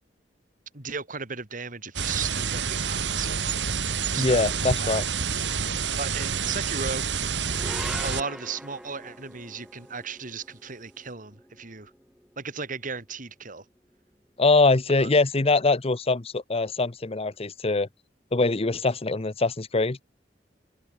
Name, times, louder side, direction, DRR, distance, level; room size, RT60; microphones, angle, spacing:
voice 1, 0.7-4.4 4.8-5.0 6.0-7.0 8.0-11.9 12.4-13.6 15.0-15.1, right 5 dB, 45° right, 2.9 m, -36 dB
sound 1, 1.9-8.2, right 6 dB, 75° right, 2.1 m, -28 dB
voice 2, 4.2-5.1 14.4-17.9 18.3-20.0, left 3 dB, 35° left, 0.8 m, -23 dB
sound 2, 7.5-14.0, equal, 5° right, 1.7 m, -43 dB
open air
head